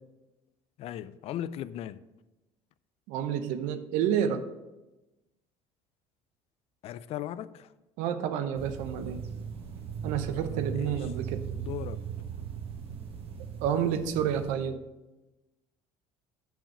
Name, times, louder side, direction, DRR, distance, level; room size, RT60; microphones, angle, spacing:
voice 1, 0.8-2.0 6.8-7.7 10.5-11.0 11.5-12.1, left 11 dB, 55° left, 0.4 m, -38 dB
voice 2, 3.1-4.4 8.0-9.2 10.0-11.4 13.6-14.8, right 9 dB, 80° right, 0.7 m, -29 dB
sound 1, 8.5-14.5, right 7 dB, 50° right, 1.3 m, -38 dB
7.1 x 5.9 x 5.4 m
cardioid pair, 120°, 12 cm